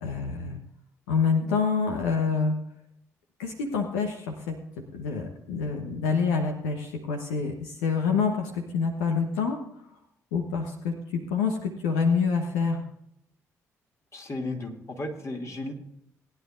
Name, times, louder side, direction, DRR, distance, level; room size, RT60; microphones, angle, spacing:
voice 1, 0.0-0.6 1.1-2.5 3.4-4.6 4.9-9.6 10.3-12.8, left 5 dB, 80° left, 3 dB, 1.1 m, -27 dB
voice 2, 14.1-15.7, left 2 dB, 40° left, 1 dB, 2.6 m, -34 dB
20.0 x 10.0 x 2.6 m, 0.73 s
hypercardioid pair, 45°, 8 cm